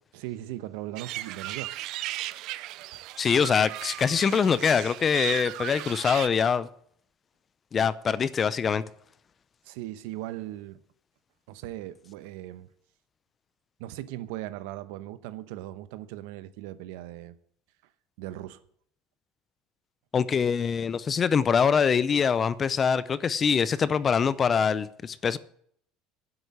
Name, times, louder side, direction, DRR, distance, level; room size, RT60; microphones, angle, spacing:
voice 1, 0.1-1.7 2.3-2.4 9.6-10.8 11.5-12.7 13.8-17.3 18.2-18.6, right 14 dB, 85° right, 0.9 m, -38 dB
sound 1, 1.0-6.3, right 16 dB, 55° right, 0.4 m, -36 dB
voice 2, 3.2-6.7 7.7-8.8 20.1-25.4, left 6 dB, 25° left, 0.5 m, -24 dB
9.9 x 8.0 x 9.7 m
cardioid pair, 155°, 0 cm